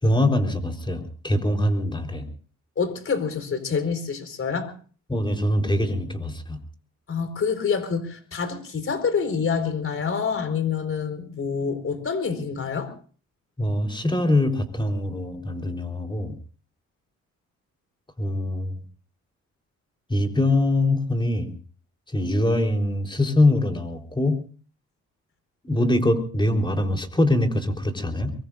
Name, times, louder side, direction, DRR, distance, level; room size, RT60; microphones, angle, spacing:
voice 1, 0.0-2.3 5.1-6.6 13.6-16.4 18.2-18.8 20.1-21.5 22.1-24.4 25.6-28.3, left 1 dB, 15° left, 3 dB, 4.0 m, -23 dB
voice 2, 2.8-4.7 7.1-12.9, left 6 dB, 45° left, 9 dB, 4.7 m, -27 dB
23.5 x 23.0 x 2.6 m, 0.42 s
cardioid pair, 90°, 30 cm